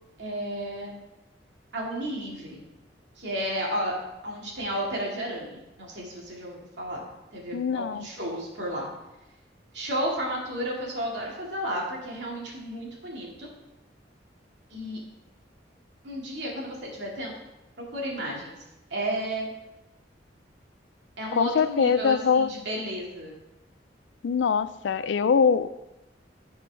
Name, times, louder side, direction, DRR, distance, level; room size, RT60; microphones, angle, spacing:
voice 1, 0.2-0.9 1.7-2.7 3.2-4.0 4.2-7.0 7.3-8.9 9.7-13.5 14.7-15.0 16.0-17.3 17.9-18.5 18.9-19.5 21.2-23.4, equal, 70° right, -2 dB, 2.2 m, -32 dB
voice 2, 7.5-8.1 21.3-22.5 24.2-25.9, left 6 dB, 75° left, 14 dB, 0.4 m, -23 dB
13.5 x 4.6 x 3.4 m, 0.96 s
head